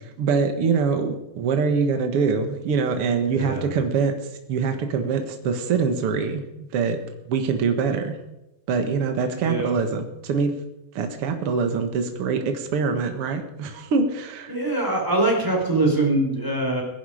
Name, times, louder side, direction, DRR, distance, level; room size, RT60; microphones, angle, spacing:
voice 1, 0.2-4.1 4.5-6.4 6.7-7.0 7.3-8.1 8.7-10.5 10.9-14.6, right 5 dB, 80° right, 6 dB, 1.2 m, -24 dB
voice 2, 3.3-3.7 9.4-9.8 14.5-16.8, right 2 dB, 5° right, -1 dB, 3.6 m, -23 dB
22.5 x 11.0 x 5.0 m, 0.93 s
omnidirectional pair, 5.0 m